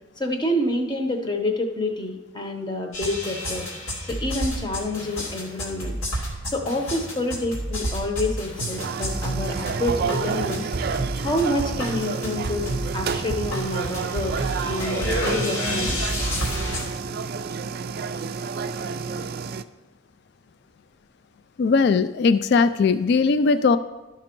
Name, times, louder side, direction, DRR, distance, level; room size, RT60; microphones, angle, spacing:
voice 1, 0.2-3.7 4.0-14.4 14.6-16.1, left 1 dB, 20° left, 4 dB, 0.9 m, -28 dB
sound 1, 2.9-16.8, equal, 90° left, 2.6 m, -29 dB
sound 2, 8.8-19.6, right 5 dB, 50° right, 0.3 m, -30 dB
voice 2, 21.6-23.8, left 4 dB, 55° left, 12 dB, 0.3 m, -19 dB
12.0 x 6.0 x 4.5 m, 1.1 s
head